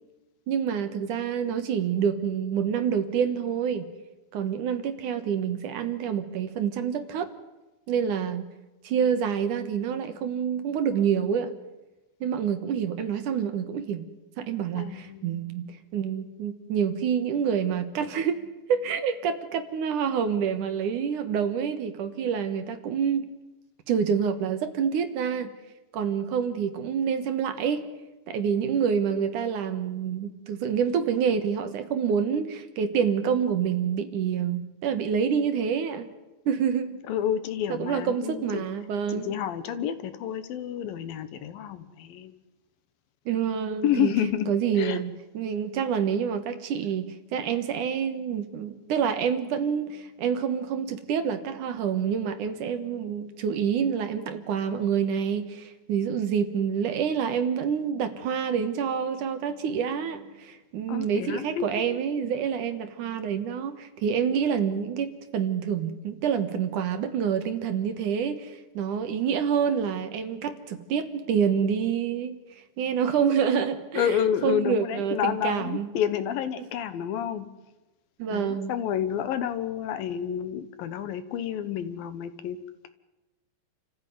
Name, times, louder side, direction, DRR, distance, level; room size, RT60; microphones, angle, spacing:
voice 1, 0.5-3.8 4.3-7.3 7.9-8.4 8.8-11.5 12.2-14.1 14.4-18.4 18.7-23.3 23.9-25.5 25.9-27.8 28.3-36.1 36.5-37.0 37.7-39.4 43.3-44.1 44.5-72.4 72.8-75.9 76.6-76.7 78.2-78.7, right 7 dB, 65° right, 9 dB, 2.7 m, -27 dB
voice 2, 14.7-15.3 37.1-38.6 39.1-42.4 43.8-45.0 60.9-62.0 73.9-77.5 78.3-82.6, left 10 dB, 80° left, 12 dB, 3.0 m, -29 dB
28.5 x 14.5 x 9.4 m, 1.1 s
omnidirectional pair, 4.1 m